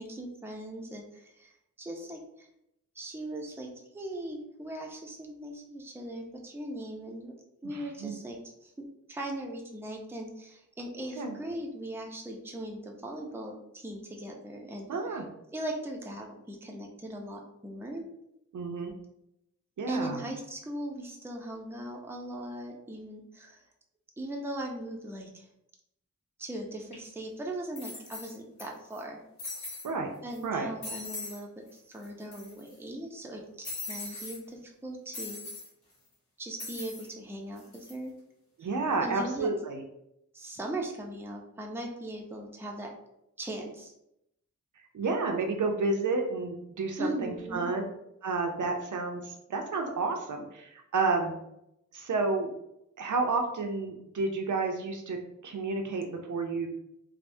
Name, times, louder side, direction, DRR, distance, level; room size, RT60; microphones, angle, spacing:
voice 1, 0.0-2.5 3.0-7.3 7.6-15.2 15.5-18.0 19.9-23.6 24.2-25.5 26.4-29.2 30.2-35.4 36.4-38.1 39.0-39.5 40.3-42.9 43.4-43.9 47.0-47.7, right 1 dB, 10° right, 1 dB, 0.4 m, -39 dB
voice 2, 7.6-8.1 11.1-11.3 14.9-15.2 18.5-18.9 19.8-20.2 29.8-30.1 30.4-30.7 38.6-39.8 44.9-47.8 48.2-51.3 51.9-52.5 53.0-55.2 55.4-56.7, right 3 dB, 75° right, 3 dB, 0.5 m, -30 dB
sound 1, 26.9-27.0 27.7-28.6 28.9-29.0 29.4-29.9 30.3-30.4 30.8-31.4 31.7-31.8 32.0-32.7 33.6-34.4 35.1-35.7 36.6-37.1 37.6-37.9, left 3 dB, 65° left, 1.3 m, -40 dB
3.3 x 2.0 x 2.6 m, 0.81 s
wide cardioid pair, 95°, 31 cm